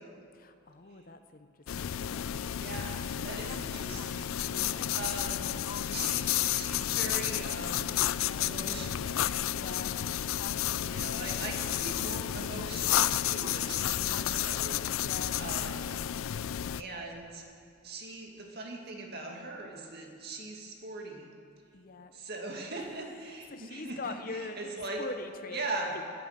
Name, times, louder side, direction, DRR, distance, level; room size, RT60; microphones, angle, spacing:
voice 1, 0.3-2.4 4.5-5.0 9.4-10.0 14.9-15.4 21.7-22.1 23.5-24.7 25.0-25.7 25.9-26.0, left 3 dB, 40° left, 9 dB, 0.7 m, -43 dB
sound 1, 1.7-16.8, left 11 dB, 80° left, 0.4 m, -31 dB
voice 2, 2.6-5.5 5.9-8.0 8.4-9.2 10.8-15.9 16.7-17.4 17.8-21.3 22.1-25.0 25.5-26.0, right 2 dB, 50° right, 1 dB, 2.2 m, -41 dB
20.5 x 10.0 x 6.5 m, 2.4 s
head